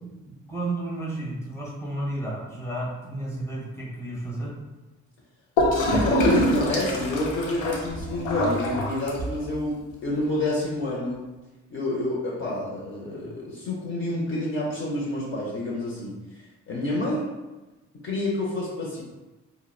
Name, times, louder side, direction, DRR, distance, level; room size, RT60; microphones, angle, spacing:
voice 1, 0.0-4.5, right 1 dB, 10° left, -5 dB, 0.9 m, -32 dB
Gurgling / Toilet flush, 5.6-9.5, equal, 80° left, 0.6 m, -24 dB
voice 2, 5.9-11.2 11.7-17.3 18.0-19.0, left 1 dB, 45° left, -6 dB, 0.6 m, -28 dB
2.8 x 2.0 x 2.3 m, 1.1 s
cardioid pair, 90°, 30 cm